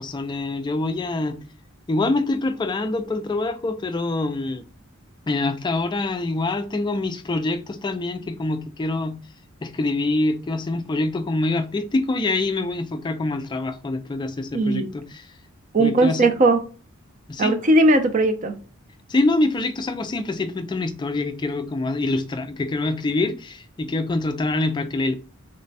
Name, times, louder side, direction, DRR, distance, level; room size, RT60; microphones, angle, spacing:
voice 1, 0.0-1.4 1.9-4.6 5.3-9.2 9.6-15.3 15.8-16.3 17.3-17.5 19.1-25.1, left 2 dB, 20° left, 0.3 m, -25 dB
voice 2, 14.5-14.9 15.7-16.6 17.4-18.5, right 2 dB, 35° right, 0.5 m, -18 dB
3.2 x 2.1 x 3.9 m
head